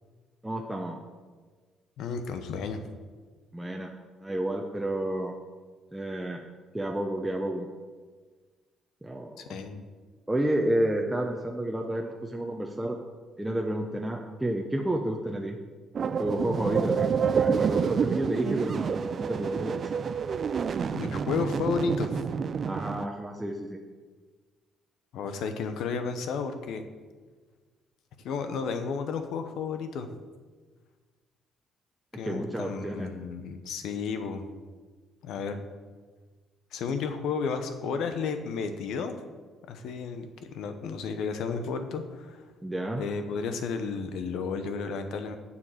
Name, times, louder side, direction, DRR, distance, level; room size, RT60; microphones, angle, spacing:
voice 1, 0.4-1.0 3.5-3.9 4.2-5.3 5.9-6.4 6.7-7.7 9.0-9.6 10.3-13.0 13.4-15.6 16.2-20.0 22.6-23.8 32.2-33.1 42.6-43.0, right 1 dB, 10° right, 1 dB, 0.9 m, -30 dB
voice 2, 2.0-2.8 9.4-9.8 17.8-17.9 20.9-22.2 25.1-26.9 28.2-30.1 32.2-34.5 35.2-35.6 36.7-39.1 39.7-42.4 43.0-45.4, left 5 dB, 75° left, 8 dB, 0.9 m, -32 dB
sound 1, 15.9-23.1, right 6 dB, 50° right, 0.4 m, -28 dB
7.1 x 7.1 x 6.6 m, 1.4 s
supercardioid pair, 70°, 0 cm